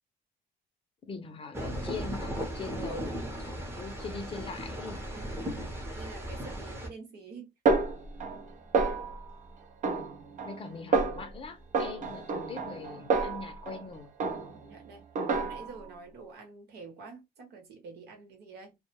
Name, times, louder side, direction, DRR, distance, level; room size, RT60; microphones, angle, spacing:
voice 1, 1.0-5.0 10.4-14.1, left 4 dB, 30° left, 0.6 m, -42 dB
sound 1, 1.5-6.9, equal, 15° right, 0.8 m, -37 dB
voice 2, 2.7-3.1 5.1-7.5 14.5-15.1 15.4-18.8, right 4 dB, 75° right, 1.0 m, -47 dB
Snare drum, 7.7-8.5 8.7-9.3 9.8-10.6 10.9-11.3 11.7-13.8 14.2-14.7 15.2-15.8, right 4 dB, 50° right, 0.6 m, -29 dB
2.2 x 2.1 x 2.9 m
cardioid pair, 110°, 17 cm